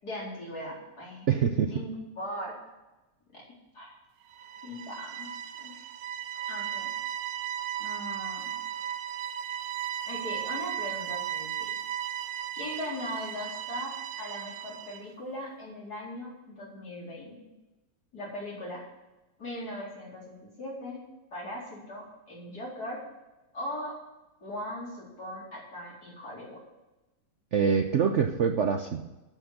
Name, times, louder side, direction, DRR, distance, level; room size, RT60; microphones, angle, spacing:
voice 1, 0.0-1.3 1.6-2.5 3.3-3.4 3.7-3.9 4.6-5.8 6.5-6.9 7.8-8.5 10.0-11.7 12.5-17.3 18.1-18.8 19.4-21.0 21.3-23.0 23.5-24.0 24.4-26.6, left 1 dB, 60° left, -5 dB, 4.8 m, -39 dB
voice 2, 1.3-1.7 27.5-29.1, right 7 dB, 60° right, 6 dB, 0.8 m, -25 dB
sound 1, 4.3-15.1, right 10 dB, 85° right, 1.4 m, -36 dB
9.0 x 8.5 x 7.9 m, 1.0 s
omnidirectional pair, 1.9 m